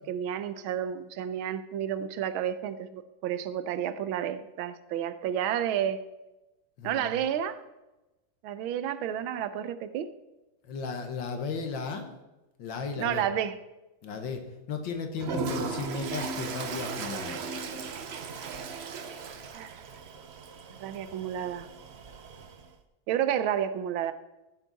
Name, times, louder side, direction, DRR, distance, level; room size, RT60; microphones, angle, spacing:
voice 1, 0.1-6.0 6.8-7.6 8.4-10.1 13.0-13.5 19.5-19.7 20.8-21.7 23.1-24.1, right 10 dB, 85° right, 13 dB, 1.5 m, -31 dB
voice 2, 6.8-7.1 10.6-12.1 12.6-13.2 14.0-14.4 14.7-17.4, left 5 dB, 70° left, 5 dB, 1.9 m, -35 dB
Toilet flush, 15.2-22.7, right 5 dB, 65° right, 0.6 m, -37 dB
15.0 x 7.4 x 4.0 m, 1.0 s
omnidirectional pair, 2.2 m